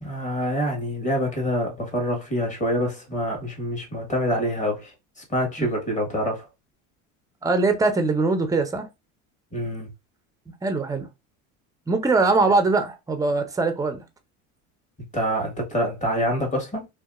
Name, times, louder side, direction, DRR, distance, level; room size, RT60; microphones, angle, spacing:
voice 1, 0.0-4.9 5.3-6.4 9.5-9.9 15.1-16.9, equal, 20° left, 1.4 m, -26 dB
voice 2, 7.4-8.9 10.6-11.1 11.9-14.0, right 3 dB, 10° right, 0.5 m, -22 dB
2.8 x 2.3 x 2.4 m
supercardioid pair, 90°, 37 cm